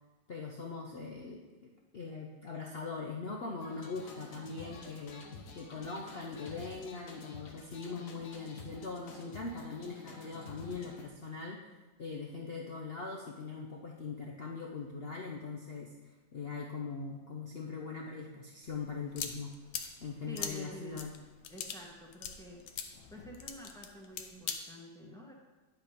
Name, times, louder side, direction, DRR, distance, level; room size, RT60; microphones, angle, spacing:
voice 1, 0.3-5.3 5.5-11.6 12.0-15.9 16.3-19.5 20.0-21.1, left 4 dB, 90° left, 0 dB, 0.5 m, -41 dB
sound 1, 3.6-11.0, left 3 dB, 55° left, 1.2 m, -50 dB
sound 2, 18.7-24.6, left 7 dB, 75° left, 1.3 m, -42 dB
voice 2, 20.3-21.0 21.5-22.6 23.1-25.3, equal, ahead, -2 dB, 0.9 m, -49 dB
10.5 x 4.8 x 5.1 m, 1.2 s
omnidirectional pair, 2.0 m